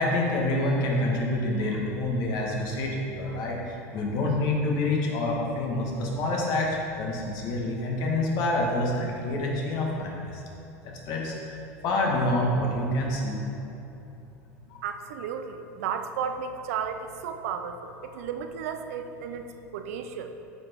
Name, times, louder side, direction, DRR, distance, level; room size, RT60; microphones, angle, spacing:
voice 1, 0.0-10.2 11.1-11.6 11.8-13.4 14.7-14.8 18.1-18.3, left 1 dB, 55° left, -2 dB, 1.9 m, -27 dB
voice 2, 14.8-19.5 19.7-20.3, right 7 dB, 80° right, 7 dB, 0.7 m, -33 dB
9.1 x 5.9 x 4.8 m, 2.9 s
supercardioid pair, 110°, 8 cm